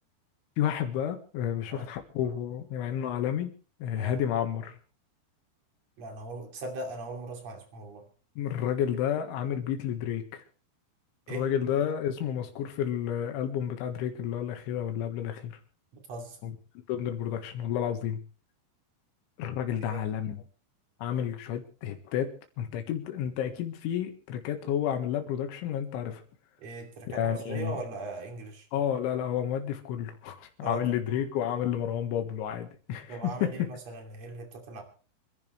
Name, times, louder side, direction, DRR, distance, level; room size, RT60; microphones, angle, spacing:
voice 1, 0.6-3.5 3.8-4.8 8.4-10.4 11.3-15.6 16.4-16.5 16.9-18.2 19.4-20.4 21.0-22.3 22.6-26.2 27.1-27.8 28.7-33.7, left 9 dB, 85° left, 5 dB, 4.0 m, -31 dB
voice 2, 6.0-8.0 11.3-11.4 15.9-16.4 19.9-20.1 26.6-28.7 30.6-30.9 33.1-34.8, right 3 dB, 40° right, 3 dB, 3.4 m, -39 dB
28.0 x 11.0 x 3.3 m, 0.38 s
omnidirectional pair, 5.4 m